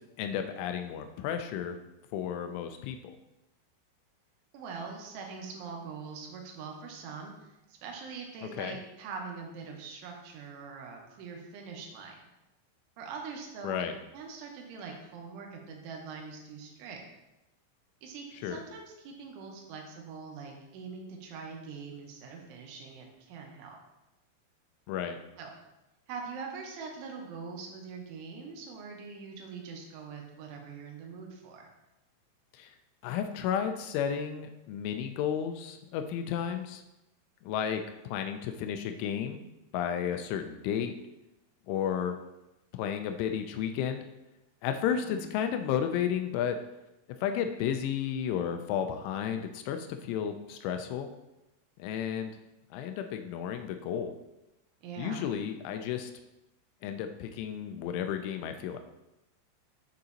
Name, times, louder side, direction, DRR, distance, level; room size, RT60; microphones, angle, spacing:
voice 1, 0.2-1.8 2.1-3.1 8.5-8.8 13.6-13.9 18.4-18.6 24.9-25.2 32.5-32.7 33.0-36.8 37.4-39.4 39.7-41.0 41.7-42.2 42.7-44.0 44.6-46.6 47.2-51.1 51.8-52.3 52.7-54.1 55.0-56.1 56.8-58.8, left 8 dB, 85° left, 6 dB, 3.0 m, -32 dB
voice 2, 4.5-12.2 13.0-13.8 14.1-17.0 18.0-23.8 25.4-25.6 26.1-31.7 44.9-45.3 54.8-55.2, right 5 dB, 85° right, 1 dB, 3.4 m, -43 dB
7.9 x 6.4 x 2.9 m, 0.94 s
omnidirectional pair, 5.5 m